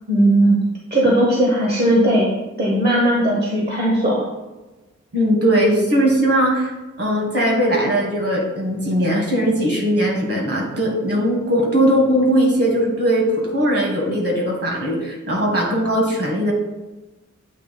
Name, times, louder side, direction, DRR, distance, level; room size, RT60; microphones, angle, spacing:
voice 1, 0.1-0.6 0.9-2.3 2.6-4.3, right 1 dB, 35° right, -3 dB, 1.2 m, -17 dB
voice 2, 5.1-16.5, equal, 50° right, -1 dB, 1.9 m, -19 dB
8.4 x 2.9 x 4.3 m, 1.1 s
wide cardioid pair, 85°, 29 cm